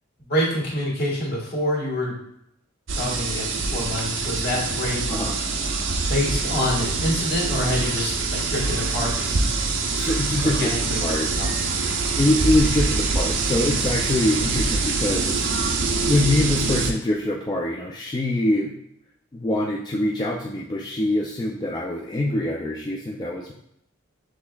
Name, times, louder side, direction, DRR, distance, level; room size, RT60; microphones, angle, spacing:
voice 1, 0.2-2.2 2.9-5.0 6.1-9.3 10.4-11.8, left 1 dB, 55° left, -3 dB, 1.6 m, -27 dB
sound 1, 2.9-16.9, right 3 dB, 70° right, 0.6 m, -24 dB
voice 2, 9.9-11.3 12.2-18.7 19.3-23.5, left 1 dB, 20° left, -2 dB, 0.4 m, -24 dB
6.2 x 3.4 x 2.3 m, 0.76 s
head